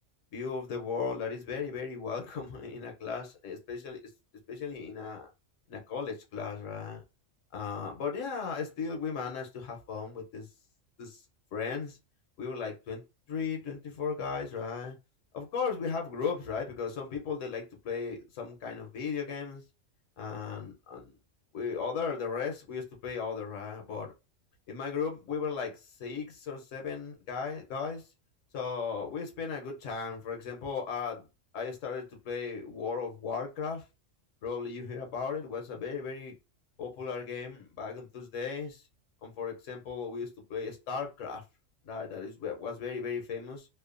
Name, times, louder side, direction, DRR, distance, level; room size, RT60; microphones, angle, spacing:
voice 1, 0.3-4.0 4.5-5.3 5.7-7.0 7.5-10.5 11.0-11.2 11.5-12.0 12.4-13.0 13.3-15.0 15.3-19.6 20.2-21.1 21.5-24.1 24.7-28.0 28.5-31.3 31.5-33.8 34.4-36.3 36.8-38.8 39.2-41.4 41.8-43.7, left 5 dB, 80° left, 1.1 m, -36 dB
2.7 x 2.1 x 2.4 m
omnidirectional pair, 1.3 m